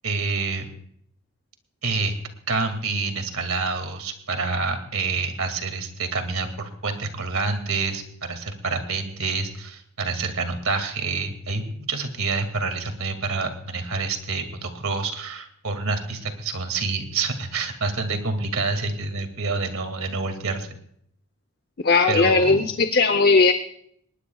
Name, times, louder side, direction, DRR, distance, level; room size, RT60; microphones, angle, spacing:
voice 1, 0.0-0.7 1.8-2.1 2.5-20.7 22.1-22.6, right 4 dB, 90° right, 6 dB, 2.4 m, -27 dB
voice 2, 21.8-23.5, left 4 dB, 50° left, 8 dB, 0.8 m, -18 dB
20.0 x 19.5 x 2.4 m, 0.68 s
head